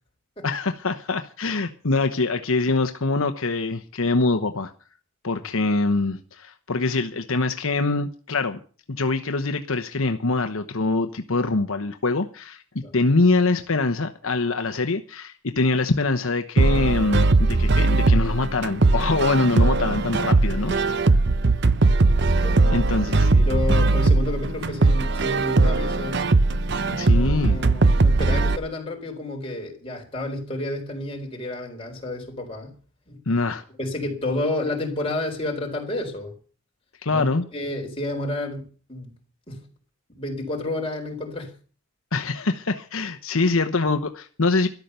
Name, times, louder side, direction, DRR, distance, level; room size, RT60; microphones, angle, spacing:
voice 1, 0.4-4.7 5.2-8.6 8.9-21.0 22.7-23.3 26.9-27.6 33.3-33.6 37.0-37.4 42.1-44.7, left 3 dB, 70° left, 1.0 m, -24 dB
sound 1, 16.6-28.6, right 3 dB, 50° right, 0.7 m, -19 dB
voice 2, 22.4-26.3 27.0-32.7 33.1-33.2 33.8-36.3 37.1-37.2 37.5-39.1 39.5-39.7 40.1-41.6, left 2 dB, 25° left, 4.2 m, -31 dB
13.5 x 12.0 x 6.8 m
head